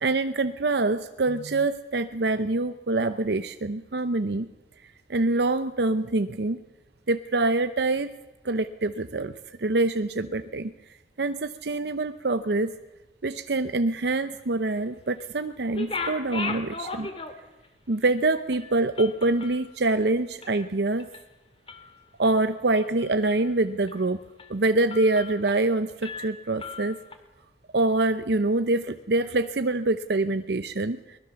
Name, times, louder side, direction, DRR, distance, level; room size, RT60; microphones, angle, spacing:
voice 1, 0.0-4.5 5.1-6.6 7.1-8.1 8.4-10.7 11.2-12.7 13.2-17.1 17.9-21.1 22.2-24.2 24.5-27.0 27.7-31.2, right 2 dB, 65° right, 10 dB, 0.7 m, -25 dB
sound 1, 15.6-17.7 18.0-18.1 18.5-20.7 21.0-21.3 21.7-22.3 22.8-23.5 23.9-24.0 24.4-24.6 24.9-25.7 26.0-27.2, left 3 dB, 30° left, 2.2 m, -37 dB
23.0 x 20.5 x 7.0 m, 1.1 s
head